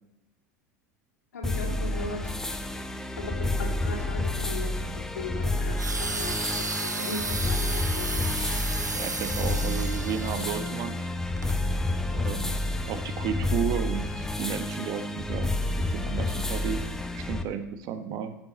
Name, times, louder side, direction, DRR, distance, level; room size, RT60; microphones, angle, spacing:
voice 1, 1.3-2.4 3.2-8.2, left 2 dB, 75° left, 0 dB, 2.6 m, -38 dB
sound 1, 1.4-17.4, left 2 dB, 5° left, 0.9 m, -30 dB
sound 2, 5.8-10.7 11.4-11.5, right 3 dB, 90° right, 0.7 m, -33 dB
voice 2, 8.9-10.9 12.1-12.5 12.8-15.5 15.9-16.8 17.1-18.3, right 8 dB, 45° right, 9 dB, 1.0 m, -33 dB
13.0 x 7.2 x 4.0 m, 0.93 s
figure-of-eight pair, 80°, 9 cm